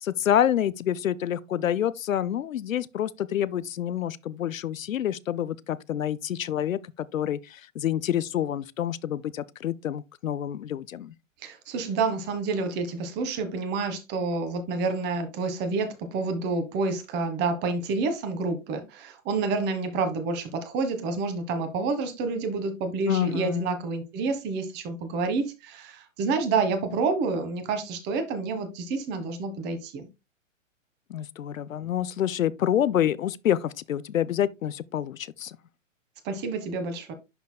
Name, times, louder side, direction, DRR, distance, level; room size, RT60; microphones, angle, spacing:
voice 1, 0.0-6.8 7.1-11.1 23.1-23.8 31.1-35.6, left 10 dB, 80° left, 0.6 m, -27 dB
voice 2, 11.4-30.1 36.2-37.1, right 4 dB, 25° right, 1.5 m, -28 dB
11.0 x 4.1 x 2.2 m
hypercardioid pair, 130°, 39 cm